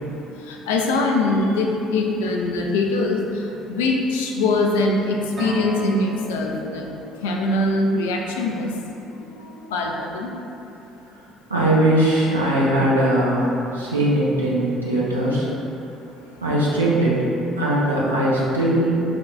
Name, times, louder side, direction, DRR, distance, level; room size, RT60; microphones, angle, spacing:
voice 1, 0.5-6.9 7.2-8.7 9.7-10.3, left 2 dB, 75° left, 0 dB, 0.4 m, -22 dB
sound 1, 5.4-9.1, right 3 dB, 45° right, 0.7 m, -36 dB
voice 2, 9.1-9.7 11.5-15.5 16.4-17.3 17.6-19.0, right 1 dB, 90° right, -7 dB, 0.5 m, -20 dB
3.4 x 2.2 x 3.7 m, 2.9 s
figure-of-eight pair, 55°, 0 cm